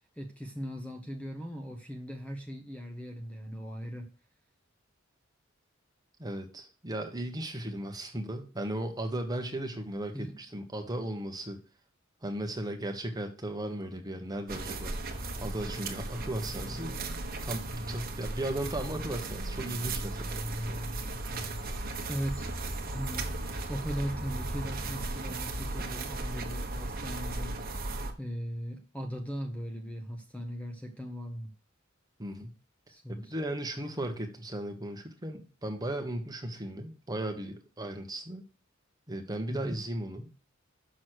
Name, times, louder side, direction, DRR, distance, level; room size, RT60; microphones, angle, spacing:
voice 1, 0.2-4.1 10.1-10.3 22.1-22.5 22.9-23.2 23.7-27.6 28.2-31.5 32.9-33.3 39.5-39.8, equal, 5° left, 3 dB, 1.0 m, -38 dB
voice 2, 6.2-11.6 12.2-14.9 15.4-17.0 17.4-20.4 32.2-32.5 33.1-38.4 39.1-40.3, right 1 dB, 20° right, 5 dB, 1.2 m, -36 dB
sound 1, 14.5-28.1, right 2 dB, 45° right, 1.2 m, -36 dB
6.3 x 6.2 x 6.2 m, 0.36 s
head